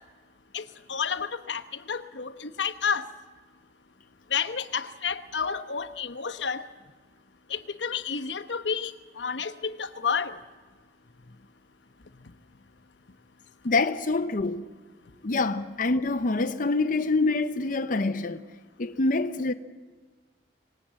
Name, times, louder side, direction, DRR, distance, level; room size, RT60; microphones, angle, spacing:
voice 1, 0.9-3.1 4.3-6.7 7.5-10.4, left 6 dB, 90° left, 1.1 m, -30 dB
voice 2, 13.6-14.7 15.2-18.4 18.8-19.5, left 3 dB, 50° left, 0.7 m, -26 dB
25.5 x 19.0 x 7.6 m
head